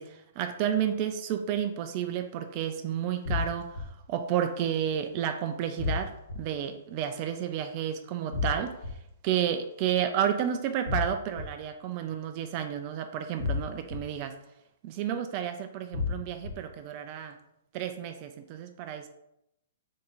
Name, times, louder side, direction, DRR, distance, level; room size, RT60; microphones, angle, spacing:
voice 1, 0.0-8.8 9.2-14.4 14.8-17.3 17.7-19.1, right 9 dB, 40° right, 8 dB, 0.4 m, -31 dB
sound 1, 3.2-3.8 5.8-6.4 8.3-8.9 10.9-11.4 13.4-14.0 15.9-16.5, left 5 dB, 70° left, 1.1 m, -30 dB
3.6 x 2.8 x 4.0 m, 0.82 s
hypercardioid pair, 130°, 0 cm